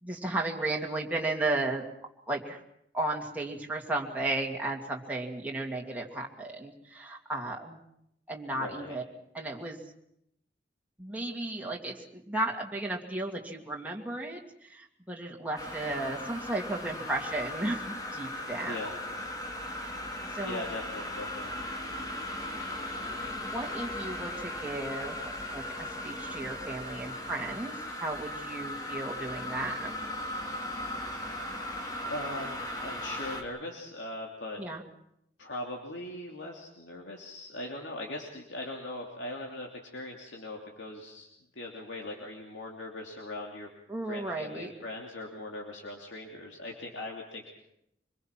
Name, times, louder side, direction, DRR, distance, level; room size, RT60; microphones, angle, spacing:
voice 1, 0.0-1.8 2.3-2.6 2.9-7.8 8.3-9.0 9.3-9.8 11.0-18.7 19.7-20.0 20.3-20.6 23.4-25.2 25.5-29.9 34.6-34.8 43.9-44.7, right 2 dB, 10° right, -1 dB, 2.6 m, -34 dB
voice 2, 8.5-9.0 18.7-18.9 20.4-21.5 32.1-34.6 35.4-39.7 39.9-41.3 41.6-43.7 44.1-47.5, left 1 dB, 85° left, -1 dB, 3.1 m, -40 dB
sound 1, 15.6-33.4, left 1 dB, 20° left, 2.9 m, -37 dB
25.5 x 22.0 x 6.1 m, 0.77 s
head